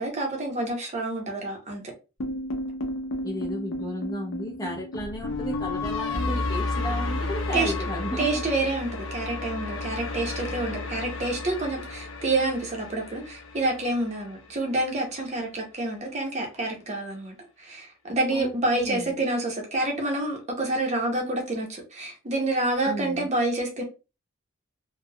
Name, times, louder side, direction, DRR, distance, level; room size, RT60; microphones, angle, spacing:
voice 1, 0.0-1.8 7.5-7.7 8.2-23.8, right 2 dB, 35° right, 0.7 m, -28 dB
sound 1, 2.2-14.4, left 2 dB, 75° left, 0.6 m, -32 dB
voice 2, 3.2-8.5 18.3-19.2 22.8-23.3, equal, 20° left, 0.6 m, -33 dB
3.3 x 2.2 x 2.2 m
head